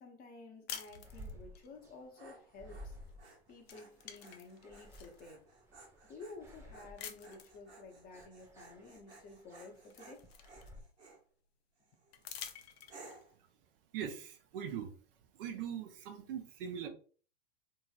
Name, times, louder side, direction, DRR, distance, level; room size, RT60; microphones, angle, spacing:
voice 1, 0.0-3.0 3.5-5.5 6.0-10.3, left 3 dB, 30° left, 0.7 m, -52 dB
sound 1, 0.7-1.7 3.1-3.3 3.6-5.2 5.8-5.9 7.0-7.6 9.0-9.1 9.5-11.0 12.1-13.2, left 9 dB, 70° left, 0.6 m, -48 dB
sound 2, 1.0-10.8, equal, 10° right, 0.3 m, -55 dB
Dog, 1.8-11.2 11.8-12.2 12.9-13.4, right 3 dB, 85° right, 1.1 m, -58 dB
voice 2, 13.9-14.9 15.4-16.9, right 8 dB, 55° right, 0.8 m, -41 dB
2.9 x 2.8 x 2.3 m
hypercardioid pair, 110°, 32 cm